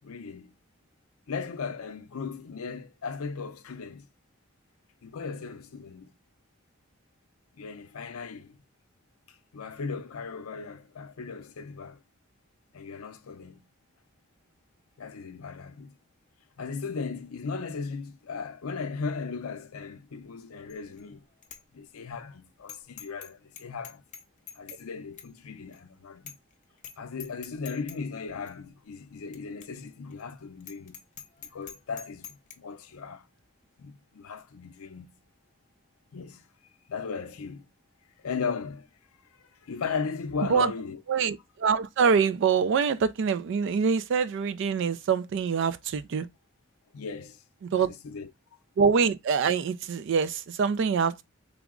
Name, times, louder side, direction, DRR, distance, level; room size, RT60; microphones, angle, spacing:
voice 1, 0.0-0.5 1.3-4.1 5.0-6.1 7.5-8.6 9.5-12.0 12.7-13.6 15.0-15.9 16.6-21.2 21.7-24.0 24.6-26.4 27.0-31.0 31.5-33.3 33.8-35.1 36.1-36.4 36.9-37.7 38.2-38.9 39.4-41.0 46.9-47.4 47.8-48.3, left 5 dB, 90° left, 0.5 m, -37 dB
Bicycle bell, 20.7-21.0 21.4-21.6 22.0-22.1 22.7-23.3 23.6-24.8 25.2-25.3 25.7-25.8 26.3-26.5 26.8-26.9 27.2-28.0 28.5-28.6 29.3-29.4 29.6-29.7 30.1-30.2 30.6-32.6, left 8 dB, 35° left, 0.5 m, -44 dB
voice 2, 41.1-46.3 47.6-47.9 48.8-51.2, right 6 dB, 60° right, 0.3 m, -25 dB
3.4 x 2.0 x 3.6 m
head